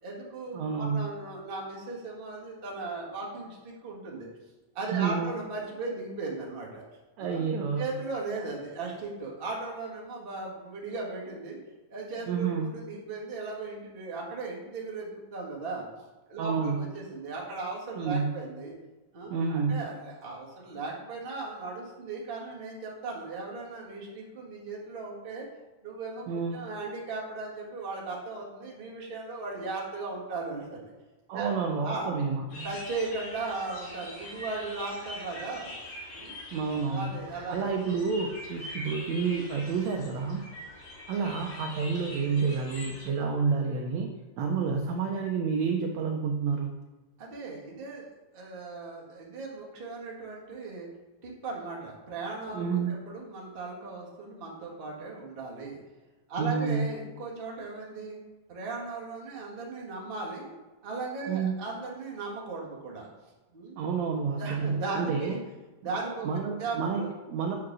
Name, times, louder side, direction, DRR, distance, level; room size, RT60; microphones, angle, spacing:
voice 1, 0.0-4.3 4.7-6.8 7.2-7.4 7.8-11.6 11.9-15.9 16.3-18.7 19.1-25.5 25.8-30.9 31.3-31.5 31.8-32.2 32.6-35.7 36.1-36.4 36.9-37.7 47.2-48.1 48.3-50.9 51.2-55.8 56.3-58.2 58.5-60.5 60.8-63.1 63.5-63.7 64.4-65.4 65.8-66.3 66.6-67.1, right 3 dB, 35° right, -3 dB, 0.9 m, -37 dB
voice 2, 0.5-1.1 4.9-5.3 7.2-7.8 12.3-12.7 16.4-16.8 17.9-18.4 19.3-19.8 26.3-26.5 31.3-32.7 36.5-37.1 37.5-40.4 41.1-44.1 44.4-46.8 52.5-53.0 56.4-56.9 61.3-61.5 63.8-65.4 66.2-67.5, right 5 dB, 90° right, 2 dB, 1.5 m, -29 dB
sound 1, 32.5-43.1, left 1 dB, 70° left, 3.6 m, -43 dB
8.2 x 4.8 x 6.1 m, 1.2 s
omnidirectional pair, 4.1 m